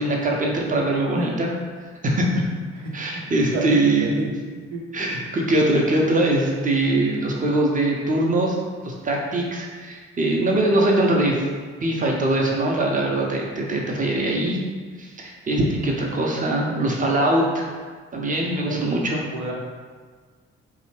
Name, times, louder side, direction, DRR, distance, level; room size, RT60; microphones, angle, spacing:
voice 1, 0.0-1.5 2.0-2.5 2.9-4.1 4.9-8.5 8.8-11.5 11.8-14.6 15.0-17.7 18.1-19.2, right 1 dB, 25° right, -1 dB, 0.6 m, -22 dB
voice 2, 3.5-4.3 4.7-4.8 18.6-19.0 19.3-19.5, right 2 dB, 70° right, -2 dB, 0.6 m, -28 dB
2.8 x 2.0 x 3.0 m, 1.5 s
figure-of-eight pair, 40°, 34 cm